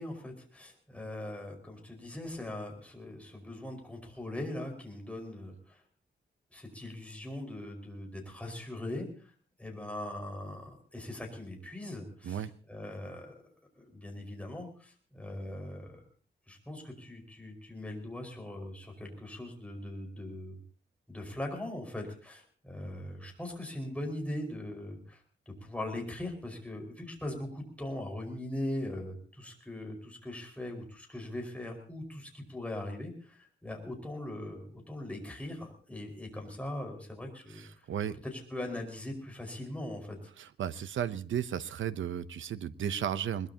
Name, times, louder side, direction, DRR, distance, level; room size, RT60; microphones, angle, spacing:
voice 1, 0.0-5.8 6.5-9.3 9.6-13.3 13.8-16.0 16.5-20.6 21.1-37.9 38.2-40.3, left 1 dB, 5° left, 1 dB, 5.1 m, -40 dB
voice 2, 37.5-38.2 40.4-43.5, right 9 dB, 85° right, 13 dB, 0.8 m, -34 dB
21.5 x 21.0 x 2.9 m, 0.42 s
wide cardioid pair, 135°, 19 cm